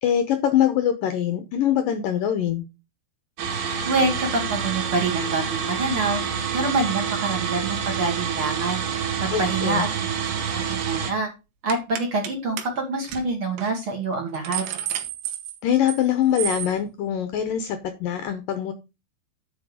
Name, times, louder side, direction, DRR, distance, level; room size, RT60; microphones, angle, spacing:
voice 1, 0.0-2.6 9.3-9.9 15.6-18.7, left 10 dB, 75° left, 2.1 m, -23 dB
sound 1, 3.4-11.1, right 7 dB, 70° right, 3.6 m, -27 dB
voice 2, 3.8-6.2 6.5-8.8 9.2-10.1 10.5-11.3 11.6-14.6, right 3 dB, 40° right, 2.3 m, -26 dB
sound 2, 10.3-10.5 10.8-11.1 11.7-12.3 12.6-12.7 13.0-13.2 13.6-13.7 14.1-16.0 16.4-16.7, right 11 dB, 85° right, 3.4 m, -31 dB
10.0 x 5.4 x 5.0 m
omnidirectional pair, 4.9 m